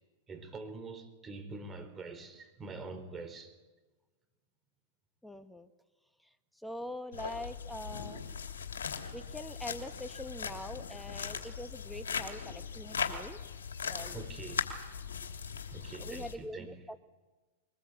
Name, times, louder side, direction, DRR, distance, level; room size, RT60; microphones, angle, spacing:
voice 1, 0.3-3.5 14.1-14.7 15.7-16.7, right 3 dB, 20° right, 4.0 m, -45 dB
voice 2, 5.2-5.7 6.6-8.2 9.1-13.4 13.9-14.2 16.0-17.0, left 1 dB, ahead, 1.3 m, -43 dB
sound 1, 7.1-16.3, left 6 dB, 80° left, 3.0 m, -39 dB
22.5 x 20.0 x 8.4 m
hypercardioid pair, 105°, 0 cm